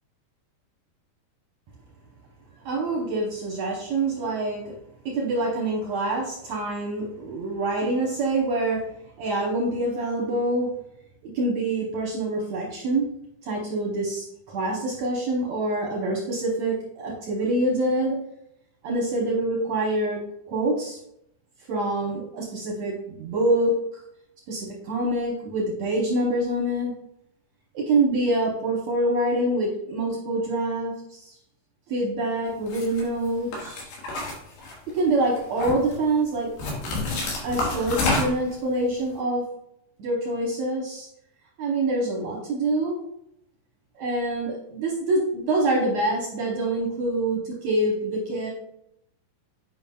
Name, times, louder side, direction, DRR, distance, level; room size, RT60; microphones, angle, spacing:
voice 1, 2.7-4.7 5.1-8.9 9.2-10.7 11.2-13.1 13.4-18.2 18.8-20.2 20.5-21.0 21.7-23.8 24.5-26.9 27.7-31.3 31.9-33.9 34.9-36.5 37.4-39.4 40.0-41.1 41.6-43.0 44.0-48.5, right 2 dB, 75° right, -3 dB, 1.7 m, -26 dB
sound 1, 32.7-33.0 33.5-35.0 35.4-36.0 36.6-38.5, left 2 dB, 80° left, 3.5 m, -28 dB
8.8 x 5.4 x 2.3 m, 0.78 s
omnidirectional pair, 4.4 m